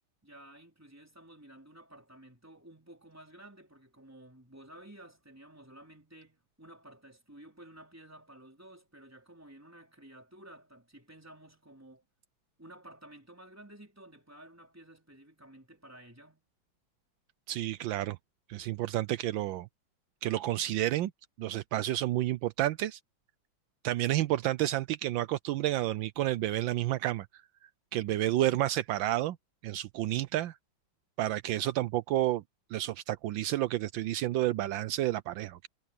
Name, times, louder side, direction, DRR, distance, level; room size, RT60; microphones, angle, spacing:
voice 1, 0.2-12.0 12.6-16.4, right 1 dB, 5° right, 4.0 m, -53 dB
voice 2, 17.5-18.2 18.5-19.7 20.2-21.1 21.4-23.0 23.8-27.3 27.9-29.4 29.6-30.6 31.2-32.4 32.7-35.7, right 14 dB, 80° right, 1.3 m, -30 dB
omnidirectional pair, 2.1 m